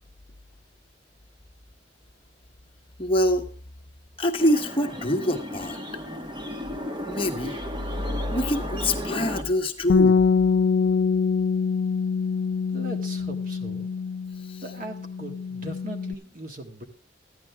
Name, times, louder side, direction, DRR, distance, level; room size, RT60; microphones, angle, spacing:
voice 1, 3.0-3.5 4.2-5.8 7.1-7.6 8.3-10.2 14.4-14.6, left 1 dB, 30° left, 2 dB, 1.2 m, -25 dB
sound 1, 4.4-9.4, equal, 25° right, 1.5 m, -34 dB
Bass guitar, 9.9-16.1, left 5 dB, 85° left, 0.4 m, -24 dB
voice 2, 12.7-13.9 14.6-16.8, right 1 dB, 50° right, 4 dB, 1.9 m, -39 dB
14.0 x 10.5 x 3.5 m, 0.40 s
head